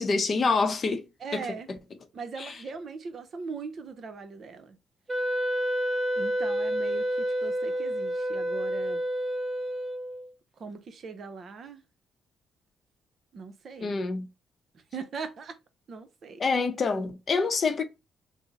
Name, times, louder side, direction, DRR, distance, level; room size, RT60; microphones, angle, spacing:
voice 1, 0.0-1.1 1.3-1.5 2.4-2.5 13.8-14.3 16.4-17.8, left 4 dB, 45° left, 0.6 m, -26 dB
voice 2, 1.2-1.7 2.1-4.8 6.2-9.0 10.6-11.8 13.3-14.0 14.7-15.6 15.9-16.4, right 5 dB, 55° right, 0.6 m, -40 dB
Wind instrument woodwind instrument, 5.1-10.3, equal, 15° right, 0.6 m, -29 dB
3.6 x 2.0 x 4.0 m
cardioid pair, 90°, 0 cm